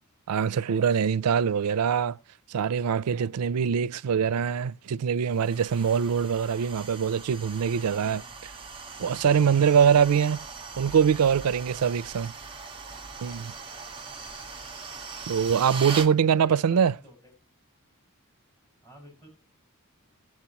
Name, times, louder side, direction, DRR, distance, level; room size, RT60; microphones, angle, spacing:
voice 1, 0.3-2.2 2.5-8.2 9.0-10.4 10.8-12.3 13.2-13.5 15.3-16.9, right 7 dB, 85° right, 0.4 m, -23 dB
sound 1, 5.3-16.1, right 4 dB, 25° right, 1.2 m, -40 dB
voice 2, 7.9-8.4 11.7-12.0 16.3-17.3 18.8-19.3, equal, 10° left, 5.8 m, -49 dB
18.5 x 7.5 x 2.9 m
head